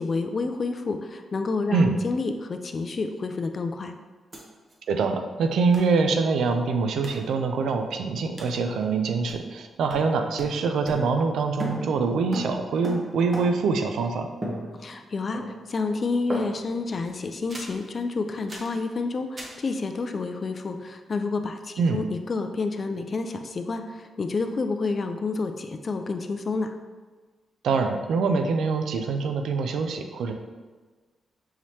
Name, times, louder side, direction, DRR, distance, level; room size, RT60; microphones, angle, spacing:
voice 1, 0.0-3.9 14.8-26.7, left 3 dB, 45° left, 6 dB, 0.3 m, -29 dB
sound 1, 4.3-4.4 4.7-4.8 5.7-6.0 7.0-7.3 8.4-8.6 9.3-9.6 9.9-11.3 11.6-13.8 14.4-15.1 15.3-15.8 16.3-16.8 17.5-17.8 18.5-18.8 19.4-19.6, right 1 dB, 35° right, 0.9 m, -37 dB
voice 2, 4.9-14.3 21.8-22.0 27.6-30.3, right 4 dB, 80° right, 6 dB, 0.4 m, -24 dB
5.6 x 3.1 x 2.8 m, 1.4 s
cardioid pair, 80°, 0 cm